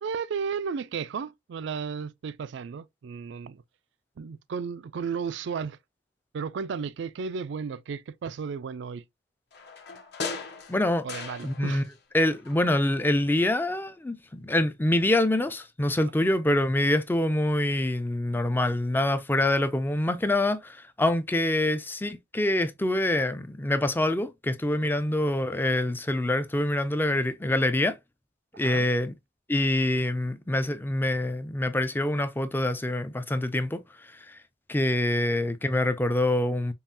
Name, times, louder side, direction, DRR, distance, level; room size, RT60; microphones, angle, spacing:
voice 1, 0.0-3.6 4.2-5.8 6.3-9.0 11.0-11.9 28.5-28.9, right 6 dB, 65° right, 0.3 m, -34 dB
sound 1, 9.5-12.0 12.2-13.3 13.6-13.7, left 4 dB, 60° left, 0.9 m, -39 dB
voice 2, 10.7-11.1 11.4-11.8 12.1-28.0 28.6-29.1 29.5-34.4 34.7-36.7, left 1 dB, 10° left, 0.4 m, -25 dB
5.4 x 2.4 x 2.7 m
head